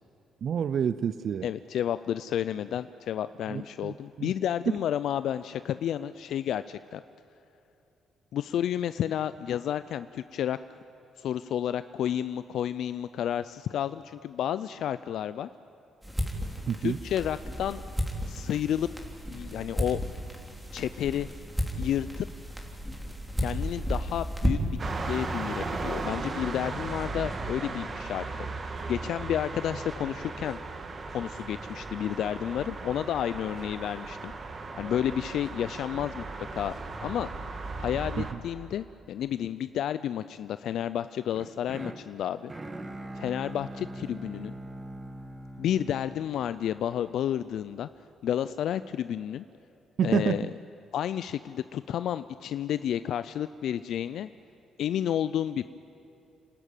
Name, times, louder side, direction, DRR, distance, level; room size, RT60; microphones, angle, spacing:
voice 1, 0.4-1.5 3.5-4.3 4.7-4.8 16.7-17.0 38.2-38.4 50.0-50.4, right 8 dB, 60° right, 14 dB, 0.4 m, -28 dB
voice 2, 1.4-7.0 8.3-10.6 11.2-15.5 16.8-17.8 18.3-18.9 19.3-20.0 20.7-21.3 21.8-22.3 23.4-28.3 28.9-30.6 31.1-34.3 34.8-36.2 36.5-36.7 37.0-37.3 37.8-42.5 43.2-44.6 45.6-47.9 48.2-49.4 50.0-50.5 50.9-54.3 54.8-55.7, left 10 dB, 75° left, 13 dB, 0.4 m, -31 dB
sound 1, 16.0-24.9, equal, 5° right, 3.3 m, -33 dB
sound 2, 24.8-38.3, right 3 dB, 40° right, 1.9 m, -36 dB
sound 3, 41.3-47.4, right 1 dB, 20° right, 1.6 m, -42 dB
28.0 x 13.0 x 9.1 m, 2.8 s
cardioid pair, 90°, 0 cm